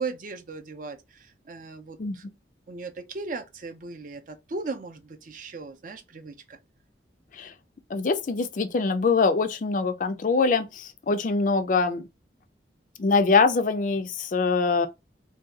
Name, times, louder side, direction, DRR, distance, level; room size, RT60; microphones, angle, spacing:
voice 1, 0.0-2.3 2.7-6.6, right 4 dB, 45° right, 0.5 m, -37 dB
voice 2, 7.9-12.0 13.0-14.9, left 4 dB, 45° left, 0.4 m, -23 dB
2.7 x 2.3 x 3.6 m
head